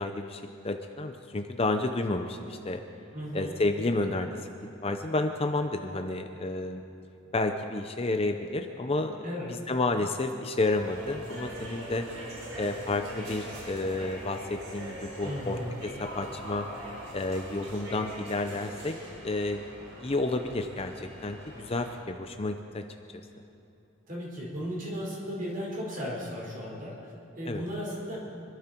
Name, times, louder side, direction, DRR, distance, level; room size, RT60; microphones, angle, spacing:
voice 1, 0.0-2.8 3.3-4.3 4.8-6.8 7.3-12.1 12.6-16.7 17.1-19.0 19.2-19.7 20.0-22.8 27.4-27.7, left 2 dB, 30° left, 6 dB, 0.6 m, -31 dB
voice 2, 3.1-3.5 9.2-9.5 15.2-15.7 24.1-28.2, equal, 40° right, -4 dB, 4.7 m, -36 dB
sound 1, 10.7-18.2, equal, 10° left, 3.8 m, -50 dB
sound 2, 10.8-21.9, right 1 dB, 90° right, 4.1 m, -43 dB
25.5 x 12.5 x 4.5 m, 2.9 s
head